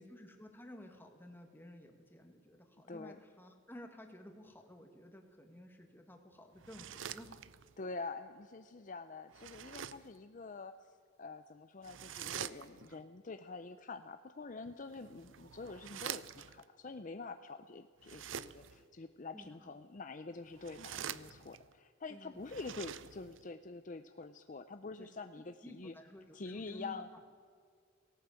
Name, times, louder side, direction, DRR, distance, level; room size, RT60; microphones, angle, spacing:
voice 1, 0.0-7.4 19.3-19.7 22.1-22.4 25.0-25.1 25.6-27.2, left 1 dB, 10° left, 4 dB, 2.0 m, -53 dB
voice 2, 2.9-3.2 7.8-10.9 11.2-25.9 26.3-27.1, left 3 dB, 40° left, 9 dB, 0.6 m, -46 dB
sound 1, 6.6-7.8 9.3-10.2 11.8-13.0 14.8-16.6 18.0-18.8 20.5-21.7 22.4-23.5, right 9 dB, 70° right, 0.6 m, -46 dB
18.0 x 17.5 x 8.3 m, 2.2 s
head